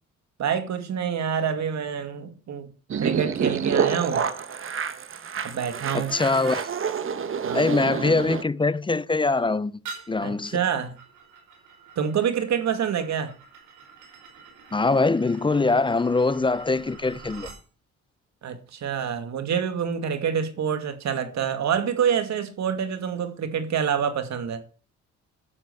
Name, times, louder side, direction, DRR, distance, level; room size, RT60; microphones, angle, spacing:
voice 1, 0.4-2.7 3.0-4.2 5.4-6.1 7.4-7.7 10.2-11.0 12.0-13.3 18.4-24.6, right 8 dB, 65° right, 2.3 m, -27 dB
sound 1, 2.9-8.4, right 7 dB, 45° right, 1.3 m, -28 dB
voice 2, 5.9-6.7 7.5-9.8 10.1-10.6 14.7-17.5, left 3 dB, 15° left, 0.6 m, -23 dB
sound 2, 9.8-17.6, right 5 dB, 90° right, 5.1 m, -46 dB
12.0 x 7.7 x 7.0 m
cardioid pair, 90°, 30 cm